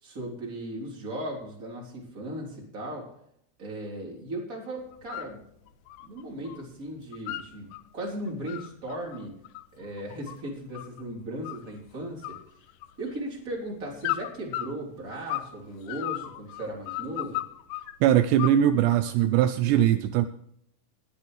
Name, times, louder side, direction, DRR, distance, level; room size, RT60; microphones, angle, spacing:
voice 1, 0.0-3.1 3.6-5.4 6.0-9.3 9.7-12.4 13.0-17.4, right 1 dB, 20° right, -2 dB, 3.4 m, -37 dB
sound 1, 4.9-5.3 5.7-6.6 6.9-7.8 8.3-11.0 11.4-11.9 12.2-13.2 14.0-15.6 15.9-17.9 18.4-19.1, left 16 dB, 80° left, 2.5 m, -35 dB
voice 2, 18.0-20.3, right 11 dB, 80° right, 10 dB, 2.7 m, -21 dB
20.0 x 9.1 x 3.2 m, 0.71 s
omnidirectional pair, 5.1 m